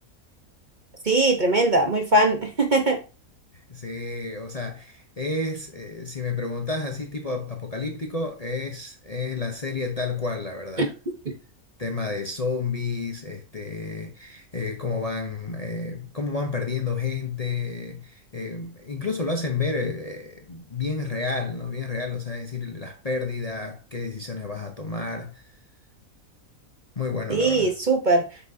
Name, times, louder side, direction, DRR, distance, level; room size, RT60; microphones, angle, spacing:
voice 1, 1.0-3.0 10.8-10.9 27.3-28.2, right 2 dB, 35° right, 1.1 m, -20 dB
voice 2, 3.5-10.9 11.8-25.6 27.0-27.7, left 4 dB, 30° left, 0.9 m, -30 dB
8.3 x 6.1 x 2.8 m
omnidirectional pair, 1.5 m